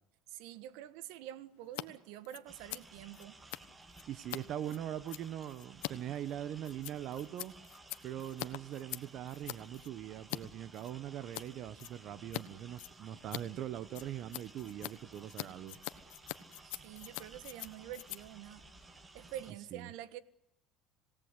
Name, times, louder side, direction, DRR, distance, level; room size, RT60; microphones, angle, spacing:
voice 1, 0.3-3.4 3.9-4.0 16.6-18.6 19.1-20.2, right 12 dB, 75° right, 1.5 m, -47 dB
Scissors, 1.6-1.8 2.1-10.4 10.7-11.5 11.8-12.4 12.7-19.5, left 21 dB, 80° left, 1.2 m, -45 dB
sound 1, 2.5-19.5, right 3 dB, 15° right, 1.5 m, -57 dB
voice 2, 4.1-7.5 8.0-15.8 19.7-19.9, right 11 dB, 50° right, 1.0 m, -41 dB
27.0 x 17.5 x 8.3 m
cardioid pair, 145°, 0 cm